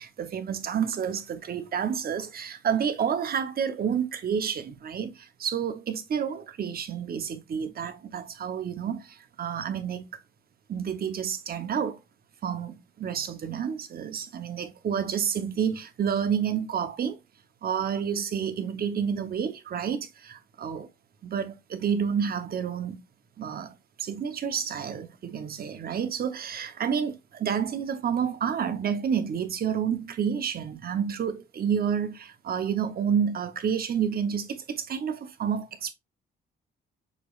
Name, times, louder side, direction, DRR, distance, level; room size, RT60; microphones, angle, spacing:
voice 1, 0.0-10.1 10.7-12.0 12.4-17.2 17.6-20.9 21.2-23.0 23.4-35.9, right 7 dB, 50° right, 0.8 m, -29 dB
6.7 x 3.0 x 2.4 m
cardioid pair, 90°, 20 cm